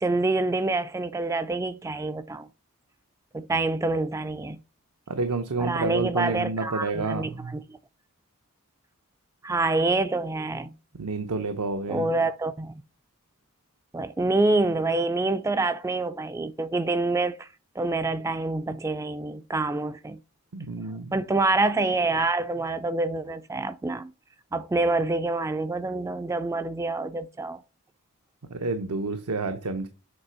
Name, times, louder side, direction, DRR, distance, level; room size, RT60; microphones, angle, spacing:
voice 1, 0.0-2.5 3.3-4.6 5.6-7.6 9.4-10.7 11.9-12.7 13.9-17.5 17.8-20.2 21.1-24.1 24.5-27.6, right 2 dB, 15° right, 0.3 m, -26 dB
voice 2, 5.1-7.6 11.0-12.1 20.5-21.2 28.5-29.9, right 3 dB, 80° right, 0.8 m, -29 dB
7.9 x 3.3 x 5.6 m
head